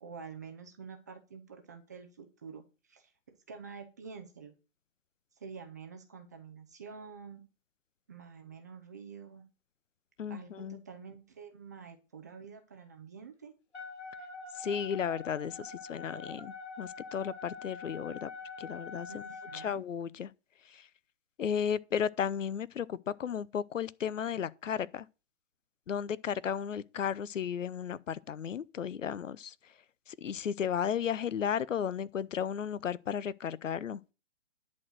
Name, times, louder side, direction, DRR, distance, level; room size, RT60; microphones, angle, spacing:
voice 1, 0.0-3.1 3.5-4.5 5.4-7.4 8.1-9.4 10.3-13.5 19.1-19.8, right 5 dB, 15° right, 0.5 m, -48 dB
voice 2, 10.2-10.8 14.6-18.3 18.6-19.2 19.5-20.3 20.7-20.9 21.4-25.1 25.9-29.5 30.1-34.0, left 8 dB, 75° left, 0.8 m, -34 dB
Wind instrument woodwind instrument, 13.7-19.8, left 4 dB, 55° left, 3.8 m, -45 dB
10.5 x 4.4 x 7.7 m
hypercardioid pair, 155°, 38 cm